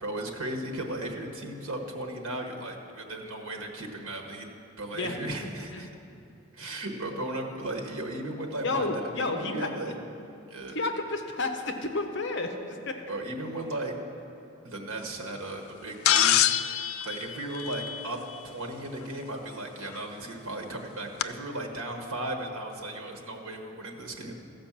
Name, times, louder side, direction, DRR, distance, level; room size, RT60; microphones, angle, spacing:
voice 1, 0.0-4.5 4.8-5.9 6.5-9.9 10.5-10.8 13.1-13.9 14.6-16.4 17.0-18.2 18.4-24.4, right 1 dB, 85° right, 3 dB, 1.3 m, -36 dB
voice 2, 4.9-5.8 6.6-6.8 8.6-9.7 10.7-13.0 17.2-17.4, left 2 dB, 55° left, 5 dB, 0.9 m, -32 dB
sound 1, 16.1-18.4 19.9-20.0 21.2-21.3, left 11 dB, 90° left, 0.4 m, -25 dB
13.5 x 5.3 x 7.3 m, 2.7 s
head